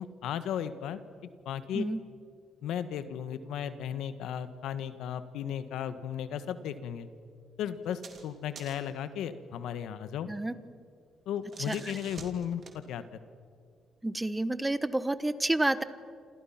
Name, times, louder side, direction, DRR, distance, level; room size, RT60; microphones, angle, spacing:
voice 1, 0.0-1.9 2.6-7.1 7.6-10.3 11.3-13.0, left 9 dB, 85° left, 11 dB, 1.5 m, -35 dB
sound 1, 7.8-8.3 8.5-9.0 11.2-12.8, right 5 dB, 50° right, 3.3 m, -48 dB
voice 2, 11.7-12.0 14.0-15.8, right 1 dB, 10° right, 14 dB, 1.2 m, -29 dB
29.0 x 27.0 x 5.9 m, 2.2 s
cardioid pair, 90°, 0 cm